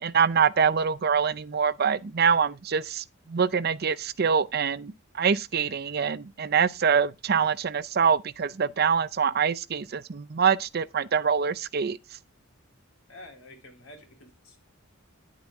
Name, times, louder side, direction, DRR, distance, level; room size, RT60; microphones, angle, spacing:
voice 1, 0.0-12.0, right 6 dB, 50° right, 0.5 m, -25 dB
voice 2, 13.1-14.6, left 1 dB, 85° left, 4.0 m, -48 dB
10.5 x 7.8 x 3.6 m
head